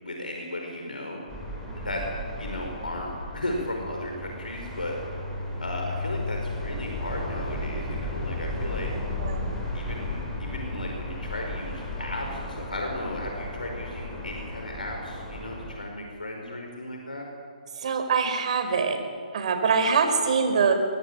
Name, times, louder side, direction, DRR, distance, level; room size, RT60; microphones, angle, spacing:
voice 1, 0.0-1.2 1.8-2.1 2.4-5.0 5.6-8.9 9.7-17.2, left 1 dB, 85° left, 1 dB, 5.1 m, -35 dB
sound 1, 1.3-15.7, left 1 dB, 10° left, 6.1 m, -34 dB
voice 2, 17.8-19.0 19.3-20.7, right 5 dB, 50° right, 6 dB, 4.8 m, -23 dB
24.5 x 21.5 x 9.1 m, 2.2 s
figure-of-eight pair, 140°, 5 cm